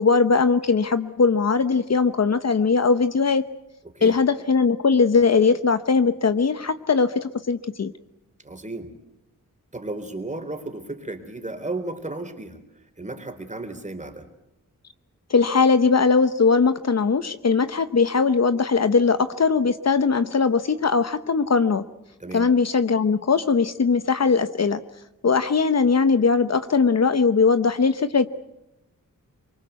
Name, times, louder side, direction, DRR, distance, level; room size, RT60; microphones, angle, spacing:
voice 1, 0.0-3.5 4.0-7.9 15.3-21.8 22.3-24.8 25.2-28.3, left 5 dB, 55° left, 11 dB, 1.0 m, -20 dB
voice 2, 8.4-8.9 9.7-12.6 13.0-14.3 22.2-22.5, right 2 dB, 25° right, 6 dB, 3.8 m, -34 dB
24.5 x 23.5 x 8.1 m, 0.88 s
wide cardioid pair, 85°, 32 cm